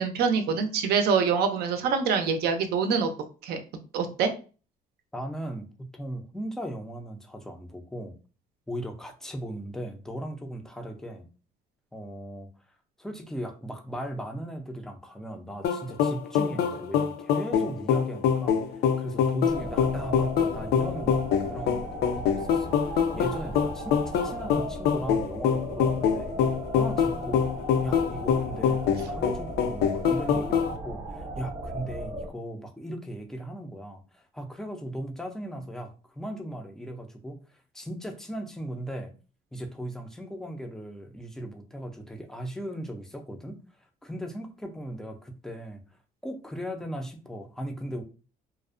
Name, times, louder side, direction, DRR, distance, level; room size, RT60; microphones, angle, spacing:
voice 1, 0.0-3.1 3.4-3.6 3.9-4.3, right 5 dB, 70° right, 7 dB, 0.5 m, -25 dB
voice 2, 5.1-8.1 8.7-11.2 11.9-12.5 13.0-21.2 21.5-21.8 22.2-26.3 26.7-27.4 27.8-39.1 39.5-43.6 44.0-45.8 46.2-48.0, right 1 dB, 5° left, 4 dB, 0.4 m, -37 dB
sound 1, 15.6-30.7, left 7 dB, 70° left, 0.4 m, -25 dB
sound 2, 19.5-32.3, right 1 dB, 35° right, 0.7 m, -37 dB
2.4 x 2.0 x 2.4 m, 0.36 s
cardioid pair, 110°, 17 cm